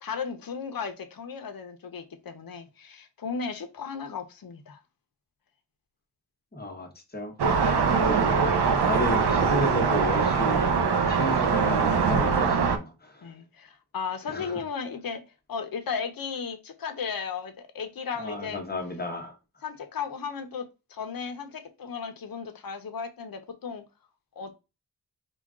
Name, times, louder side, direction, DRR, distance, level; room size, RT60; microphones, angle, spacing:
voice 1, 0.0-4.8 13.2-15.2 15.5-18.6 19.6-23.8 24.4-24.5, left 6 dB, 60° left, 0.8 m, -35 dB
voice 2, 6.5-7.3 8.0-8.4 8.8-10.7 11.1-13.3 14.3-14.6 18.2-19.3, left 1 dB, 25° left, 1.1 m, -33 dB
sound 1, 7.4-12.8, right 5 dB, 80° right, 0.8 m, -23 dB
5.0 x 2.3 x 3.6 m
wide cardioid pair, 95°, 39 cm